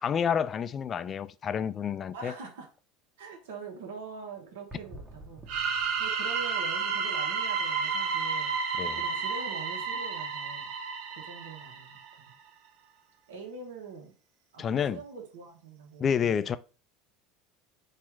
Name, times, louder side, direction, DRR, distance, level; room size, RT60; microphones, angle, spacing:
voice 1, 0.0-2.3 8.8-9.0 14.6-15.0 16.0-16.6, left 7 dB, 35° left, 0.4 m, -29 dB
voice 2, 2.1-2.7 3.2-5.6 6.0-8.6 8.9-10.7 11.2-12.4 13.3-14.1 14.5-16.5, right 4 dB, 80° right, 1.1 m, -44 dB
sound 1, 4.7-7.7 8.0-8.1 8.7-8.8 13.3-13.4, right 1 dB, 20° right, 1.0 m, -51 dB
sound 2, 5.5-12.1, right 5 dB, 65° right, 0.8 m, -31 dB
4.4 x 2.5 x 4.6 m
supercardioid pair, 105°, 0 cm